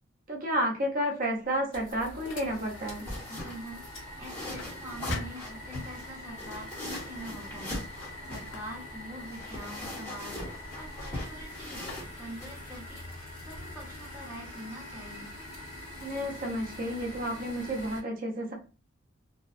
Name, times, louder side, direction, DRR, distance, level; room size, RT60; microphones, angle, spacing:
voice 1, 0.3-3.2 16.0-18.5, equal, 40° right, 1 dB, 0.6 m, -31 dB
sound 1, 1.3-3.4 3.7-6.0 6.9-7.2 7.5-11.4 11.9-13.0, left 4 dB, 60° left, 0.4 m, -48 dB
sound 2, 1.7-18.0, left 1 dB, 80° left, 1.4 m, -44 dB
sound 3, 1.9-14.5, left 1 dB, 10° left, 1.1 m, -42 dB
voice 2, 3.3-15.3, equal, 15° right, -4 dB, 0.9 m, -45 dB
2.7 x 2.2 x 2.4 m, 0.33 s
head